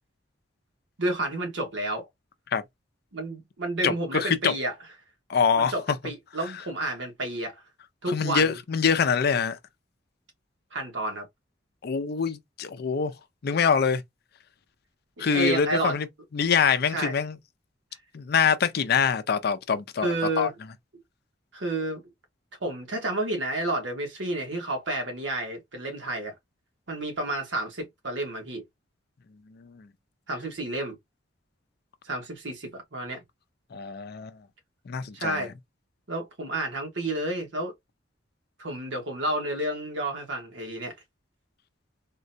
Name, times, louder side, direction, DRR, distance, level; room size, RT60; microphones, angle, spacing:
voice 1, 1.0-2.1 3.1-4.7 5.6-7.6 8.0-8.6 10.7-11.3 15.2-16.0 16.9-17.1 20.0-20.5 21.5-22.0 22.6-26.3 26.9-28.6 30.3-30.9 32.0-33.2 35.1-35.5 36.1-37.7 38.6-40.9, right 1 dB, 80° right, 1.2 m, -30 dB
voice 2, 3.8-4.5 5.3-5.7 8.1-9.6 11.8-13.1 13.4-14.0 15.2-16.1 16.3-17.4 18.1-20.5 29.5-29.9 33.7-34.4 34.9-35.4, left 6 dB, 60° left, 0.4 m, -25 dB
3.7 x 2.1 x 2.6 m
head